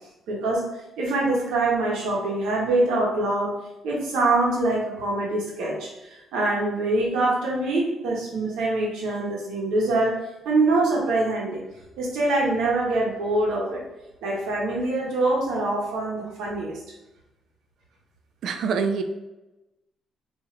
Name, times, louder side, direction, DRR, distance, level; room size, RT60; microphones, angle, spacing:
voice 1, 0.3-0.7 1.0-3.6 3.8-10.2 10.4-11.6 12.0-13.8 14.2-16.8, right 2 dB, 90° right, -3 dB, 0.9 m, -24 dB
voice 2, 18.4-19.0, right 5 dB, 70° right, 7 dB, 0.3 m, -25 dB
3.0 x 2.4 x 2.5 m, 0.99 s
cardioid pair, 90°, 0 cm